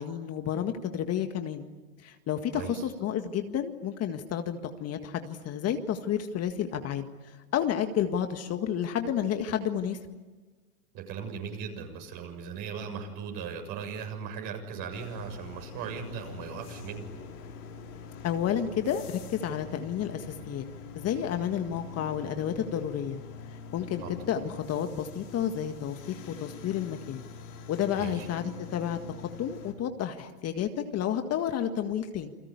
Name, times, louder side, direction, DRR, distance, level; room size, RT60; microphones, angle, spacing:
voice 1, 0.0-1.7 2.0-7.1 7.5-10.0 18.2-20.6 21.0-23.2 23.5-26.0 26.4-27.2 27.7-32.3, left 9 dB, 30° left, 7 dB, 1.8 m, -31 dB
voice 2, 10.9-17.1 24.0-24.1 28.0-28.3, right 6 dB, 50° right, 4 dB, 7.2 m, -38 dB
sound 1, 14.9-29.7, left 5 dB, 75° left, 5.2 m, -45 dB
29.0 x 21.0 x 9.7 m, 1.3 s
hypercardioid pair, 110°, 45 cm